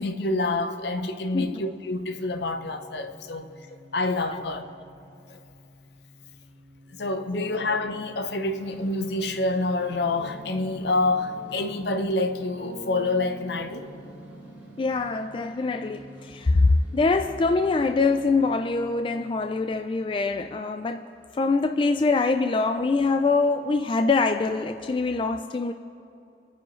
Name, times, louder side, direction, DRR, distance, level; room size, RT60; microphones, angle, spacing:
voice 1, 0.0-3.5 3.9-4.7 5.3-5.4 7.0-13.9, left 2 dB, 65° left, 0.7 m, -27 dB
sound 1, 1.6-19.9, left 1 dB, 85° right, 1.4 m, -52 dB
sound 2, 8.5-18.5, right 4 dB, 10° right, 2.3 m, -50 dB
sound 3, 9.9-15.0, left 1 dB, 50° left, 1.5 m, -45 dB
voice 2, 14.8-21.1 21.3-25.7, left 3 dB, 30° left, 0.3 m, -24 dB
26.5 x 9.2 x 3.1 m
head